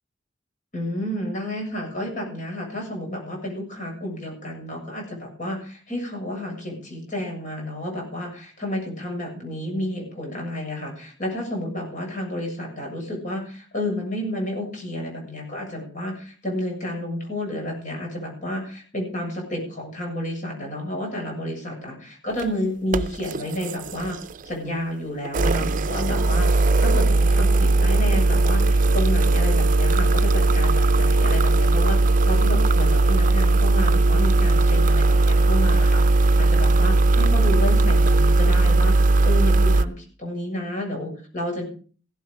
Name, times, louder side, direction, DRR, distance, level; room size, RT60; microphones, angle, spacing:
voice 1, 0.7-24.2 24.4-26.5 26.8-36.0 36.5-38.9 39.2-41.6, left 1 dB, 45° left, 0 dB, 7.4 m, -30 dB
sound 1, 22.3-22.4 22.9-24.5 25.3-39.9, right 2 dB, 45° right, 0.6 m, -18 dB
16.5 x 12.5 x 5.0 m, 0.41 s
head